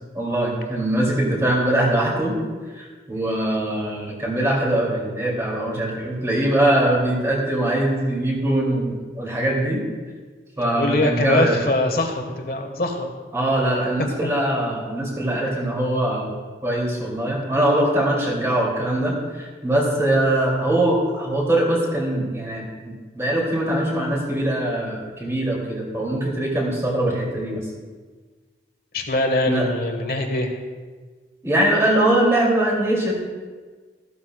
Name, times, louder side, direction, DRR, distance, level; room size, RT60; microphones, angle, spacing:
voice 1, 0.1-2.4 2.7-9.8 10.6-11.6 13.3-16.3 16.6-27.6 29.5-29.6 31.4-33.2, right 1 dB, 15° right, -3 dB, 2.6 m, -22 dB
voice 2, 10.6-13.1 14.2-14.3 15.3-15.6 28.9-30.5, left 2 dB, 55° left, 3 dB, 1.4 m, -23 dB
14.0 x 12.5 x 2.3 m, 1.4 s
head